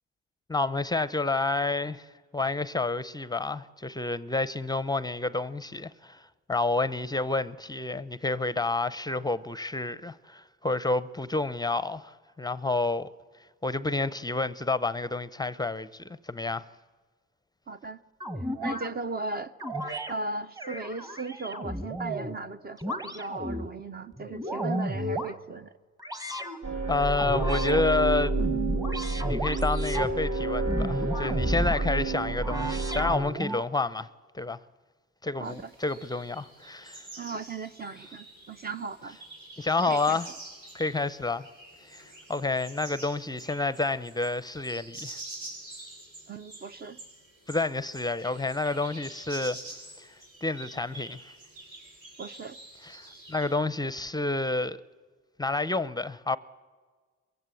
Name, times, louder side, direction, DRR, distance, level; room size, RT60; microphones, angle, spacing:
voice 1, 0.5-2.1 2.3-13.1 13.6-16.7 26.9-28.3 29.3-34.1 34.3-34.6 35.2-37.1 39.6-40.3 40.7-41.5 41.8-45.2 47.5-49.6 50.0-50.1 50.4-51.3 52.8-54.8 55.4-56.4, left 3 dB, 15° left, 0.5 m, -29 dB
voice 2, 17.7-18.0 18.6-19.5 20.1-25.7 35.4-35.7 37.2-39.2 39.8-40.2 46.3-47.0 52.2-52.6, right 3 dB, 30° right, 0.6 m, -37 dB
sound 1, 18.2-18.9 19.6-20.1 20.6-22.4 22.8-23.7 24.2-25.3 26.0-26.6 27.2-27.8 28.3-30.1 30.6-31.9 32.4-33.6, equal, 10° right, 1.3 m, -33 dB
sound 2, 26.6-33.2, right 3 dB, 50° right, 1.7 m, -29 dB
sound 3, 35.4-53.6, right 2 dB, 80° right, 7.1 m, -47 dB
22.5 x 15.0 x 8.3 m
cardioid pair, 90°, 30 cm